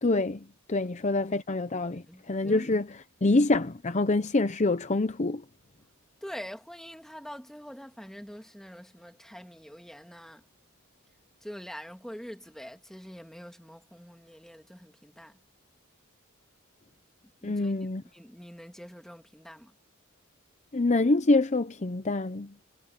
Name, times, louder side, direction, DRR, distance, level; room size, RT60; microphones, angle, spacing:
voice 1, 0.0-5.4 17.4-18.0 20.7-22.5, left 2 dB, 35° left, 0.7 m, -26 dB
voice 2, 1.9-2.7 6.2-10.4 11.4-15.4 17.4-17.7 18.1-19.8, equal, ahead, 1.9 m, -45 dB
head